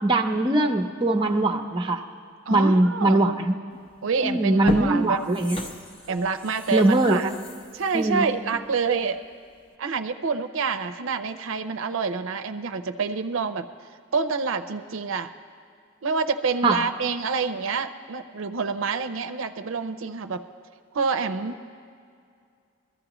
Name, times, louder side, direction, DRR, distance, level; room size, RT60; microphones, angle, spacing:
voice 1, 0.0-2.0 2.5-3.5 4.2-5.6 6.7-7.2 7.9-8.3 16.6-16.8, right 2 dB, 25° right, 4 dB, 0.6 m, -21 dB
voice 2, 2.5-3.2 4.0-5.2 6.1-7.3 7.7-9.2 9.8-13.7 14.1-15.3 16.0-20.4 20.9-21.6, right 5 dB, 75° right, 7 dB, 0.5 m, -27 dB
sound 1, 3.9-4.0 4.5-9.2 9.6-9.7, left 2 dB, 25° left, 0.7 m, -35 dB
22.5 x 14.5 x 3.0 m, 2.3 s
head